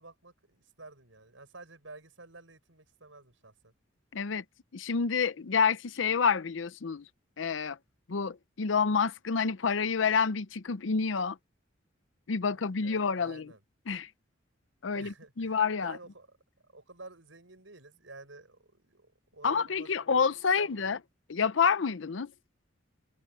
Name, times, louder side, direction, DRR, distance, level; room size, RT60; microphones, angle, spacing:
voice 1, 0.0-3.7 12.4-13.6 14.8-16.4 16.6-20.9, right 3 dB, 85° right, 6.4 m, -51 dB
voice 2, 4.1-4.4 4.7-7.0 7.4-7.8 8.1-11.4 12.3-13.5 13.9-14.1 14.8-15.9 19.4-21.0 21.3-22.3, left 5 dB, 75° left, 0.6 m, -28 dB
head